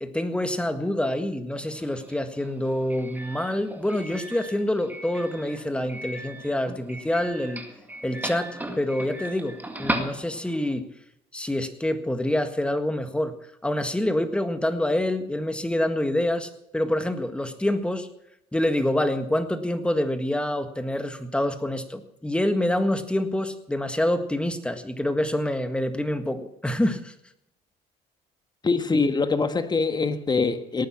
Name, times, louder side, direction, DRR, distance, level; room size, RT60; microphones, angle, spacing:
voice 1, 0.0-7.6 8.0-10.9 11.3-13.3 13.6-18.1 18.5-27.1, left 1 dB, 5° left, 8 dB, 1.7 m, -26 dB
Doorbell, 1.7-10.7, right 1 dB, 10° right, 2.0 m, -37 dB
voice 2, 28.6-30.9, left 4 dB, 25° left, 9 dB, 1.5 m, -23 dB
18.0 x 9.3 x 5.8 m, 0.77 s
cardioid pair, 110°, 17 cm